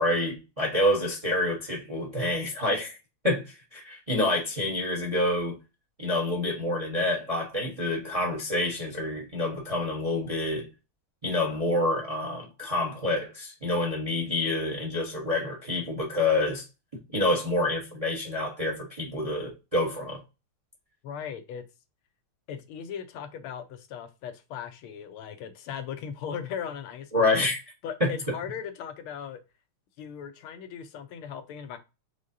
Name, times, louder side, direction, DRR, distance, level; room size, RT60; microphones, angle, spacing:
voice 1, 0.0-3.0 3.2-5.6 6.0-10.7 11.2-16.6 17.1-20.2 27.1-27.6 28.0-28.1, left 1 dB, 30° right, 0.7 m, -27 dB
voice 2, 21.0-21.6 22.5-27.4 27.8-29.4 30.0-31.8, left 8 dB, 85° left, 1.6 m, -38 dB
5.0 x 3.6 x 2.7 m
omnidirectional pair, 2.3 m